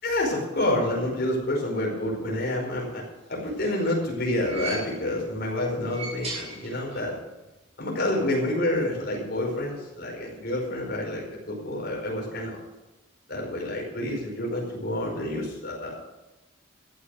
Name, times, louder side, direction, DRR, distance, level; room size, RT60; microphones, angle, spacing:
voice 1, 0.0-3.0 3.3-7.2 7.8-12.6 13.3-16.0, left 1 dB, 50° left, -1 dB, 5.1 m, -28 dB
sound 1, 3.3-5.3 5.7-7.2 7.4-7.5 8.6-8.7, right 3 dB, 30° right, 5.6 m, -39 dB
14.5 x 9.8 x 6.5 m, 1.0 s
head